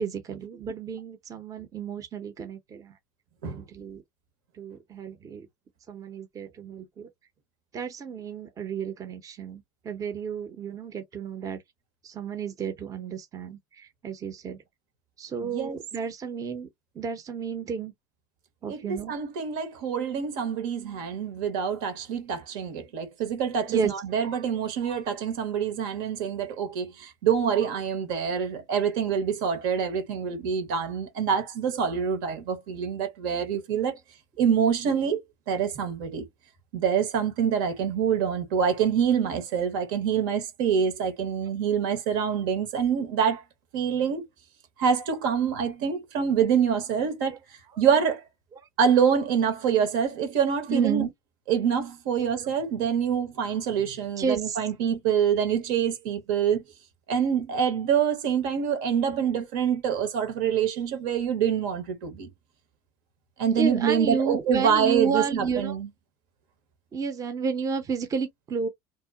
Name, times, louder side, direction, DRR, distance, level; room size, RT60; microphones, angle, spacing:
voice 1, 0.0-3.0 3.4-4.0 4.5-5.5 5.9-7.1 7.7-11.6 12.0-14.6 15.2-16.7 16.9-17.9 18.6-19.1 23.6-23.9 47.7-47.8 48.6-48.7 50.7-51.1 52.2-52.5 54.2-54.6 63.6-65.8 66.9-68.7, right 6 dB, 35° right, 0.7 m, -31 dB
voice 2, 15.4-15.8 18.7-34.0 34.4-35.2 35.5-36.2 36.7-43.4 43.7-44.3 44.8-47.4 47.8-48.2 48.8-51.1 51.5-56.6 57.1-62.3 63.4-65.9, right 7 dB, 75° right, 1.1 m, -26 dB
2.8 x 2.2 x 2.2 m
hypercardioid pair, 90°, 11 cm